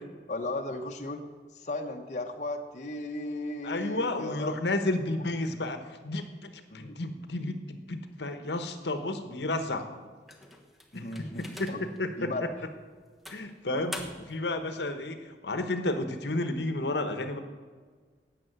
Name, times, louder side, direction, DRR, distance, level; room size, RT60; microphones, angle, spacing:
voice 1, 0.3-1.2 1.5-4.7 6.7-7.0 10.9-11.8 12.2-12.5, left 2 dB, 40° left, 2 dB, 1.0 m, -36 dB
voice 2, 3.6-5.8 6.0-6.5 6.7-9.9 10.9-11.1 11.6-11.7 12.0-12.3 13.3-17.4, left 2 dB, 70° left, 8 dB, 1.1 m, -31 dB
sound 1, 10.3-12.0 12.5-12.7 13.3-14.5, left 1 dB, ahead, 1.2 m, -43 dB
12.5 x 8.5 x 7.9 m, 1.5 s
head